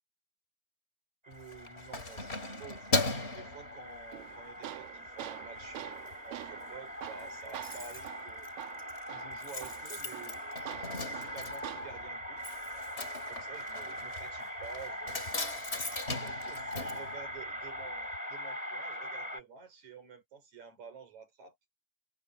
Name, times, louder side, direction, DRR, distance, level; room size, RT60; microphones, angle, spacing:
sound 1, 1.2-19.4, equal, 10° right, 5.1 m, -42 dB
Keys jangling, 1.3-4.4 4.9-5.1 5.4-6.1 6.4-6.5 6.7-6.8 7.0-17.9 18.1-18.2, left 2 dB, 20° left, 2.6 m, -38 dB
voice 1, 1.3-8.5 9.1-12.6 13.3-15.3 16.1-21.6, right 6 dB, 45° right, 6.2 m, -50 dB
Tools, 4.1-12.1, right 15 dB, 80° right, 2.8 m, -46 dB
omnidirectional pair, 4.5 m